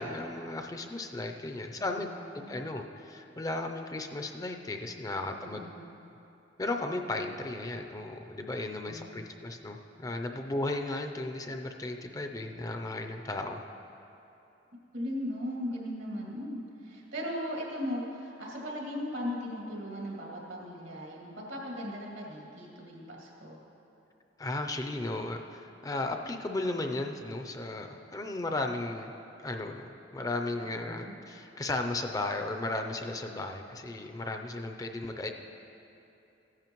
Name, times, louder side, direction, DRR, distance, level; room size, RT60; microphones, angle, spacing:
voice 1, 0.0-2.1 2.3-5.6 6.6-13.6 24.4-29.1 29.4-35.3, left 2 dB, 20° left, 4 dB, 0.5 m, -35 dB
voice 2, 1.8-2.6 5.4-5.8 8.9-9.3 14.9-23.6 30.6-31.1, equal, 80° right, -3 dB, 2.3 m, -38 dB
15.0 x 10.5 x 3.0 m, 2.9 s
head